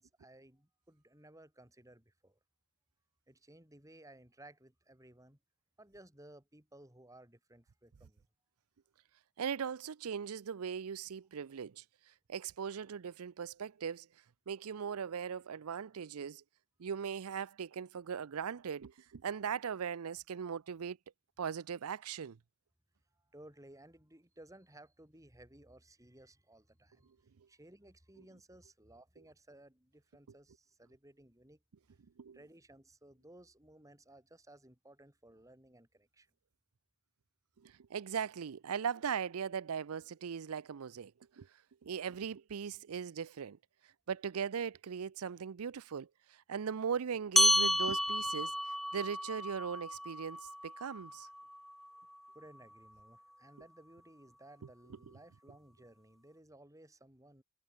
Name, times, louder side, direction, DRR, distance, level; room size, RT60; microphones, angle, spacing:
voice 1, 0.0-2.4 3.3-5.4 5.8-8.2 23.1-31.6 31.9-32.0 32.3-36.3 51.9-52.1 52.3-57.4, right 1 dB, 15° right, 3.8 m, -58 dB
voice 2, 9.4-14.1 14.5-16.4 16.8-21.0 21.4-22.4 27.4-27.5 32.2-32.4 37.6-41.5 41.8-43.6 44.1-51.3, right 7 dB, 90° right, 0.5 m, -39 dB
sound 1, 47.4-52.2, equal, ahead, 0.3 m, -32 dB
head